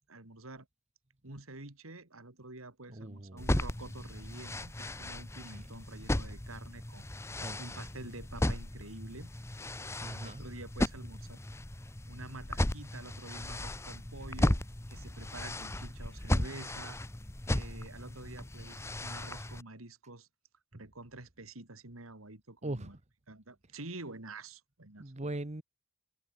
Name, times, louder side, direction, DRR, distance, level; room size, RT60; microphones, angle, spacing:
voice 1, 0.1-0.7 1.2-7.0 7.6-9.3 10.1-11.4 12.1-14.6 14.9-17.0 17.5-20.3 20.7-23.0 23.3-25.3, right 2 dB, 90° right, 3.2 m, -48 dB
voice 2, 2.9-3.5 5.5-5.6 7.4-7.9 10.0-10.5 22.6-22.9 25.0-25.6, right 1 dB, 35° right, 1.3 m, -40 dB
sound 1, 3.4-19.6, left 1 dB, 15° left, 0.9 m, -35 dB
head